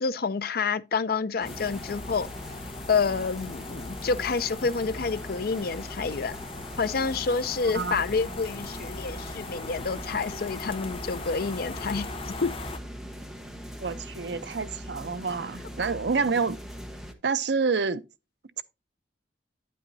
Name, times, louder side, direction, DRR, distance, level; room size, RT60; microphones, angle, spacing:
voice 1, 0.0-2.3 2.9-6.4 6.8-12.5, left 4 dB, 55° left, 0.5 m, -28 dB
sound 1, 1.4-12.8, left 3 dB, 30° left, 0.8 m, -40 dB
sound 2, 1.4-17.1, equal, ahead, 1.2 m, -41 dB
voice 2, 13.8-16.6 17.2-18.0 18.6-18.7, right 4 dB, 70° right, 0.6 m, -28 dB
9.6 x 8.5 x 2.7 m
head